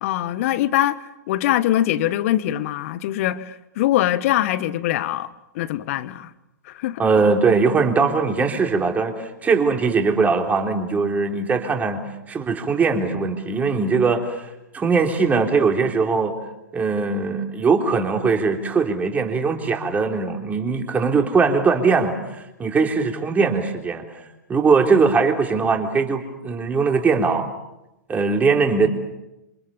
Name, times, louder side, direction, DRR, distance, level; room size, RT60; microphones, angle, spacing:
voice 1, 0.0-5.3 5.5-6.3 6.6-7.0, left 13 dB, 50° left, 1.5 m, -23 dB
voice 2, 7.0-14.5 14.7-16.4 16.7-24.0 24.5-27.5 28.1-28.9, right 4 dB, 15° right, 3.6 m, -20 dB
28.0 x 27.0 x 7.2 m
figure-of-eight pair, 110°, 10 cm